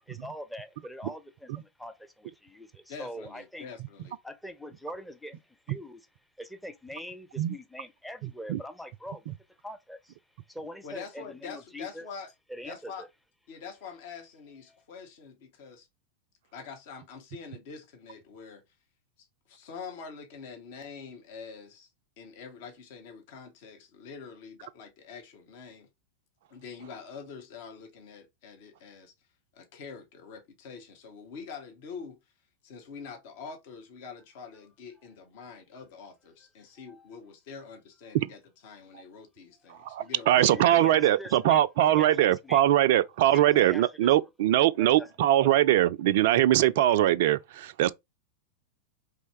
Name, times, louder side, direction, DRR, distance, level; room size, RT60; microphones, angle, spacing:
voice 1, 0.0-3.7 4.2-6.1 6.4-9.3 9.6-10.2 10.5-12.1 12.5-13.1 14.7-14.8 36.8-37.1 39.8-39.9 40.3-42.6 43.3-44.1 44.8-45.1 45.4-45.7, left 1 dB, 5° left, 0.6 m, -43 dB
voice 2, 2.9-4.2 10.8-12.3 12.6-13.1 13.5-15.9 16.5-18.6 19.2-21.9 22.2-25.9 26.5-29.1 29.5-32.2 32.6-40.7, left 5 dB, 50° left, 1.0 m, -45 dB
voice 3, 39.8-47.9, right 13 dB, 50° right, 0.3 m, -22 dB
4.2 x 3.3 x 3.2 m
figure-of-eight pair, 90°, 0 cm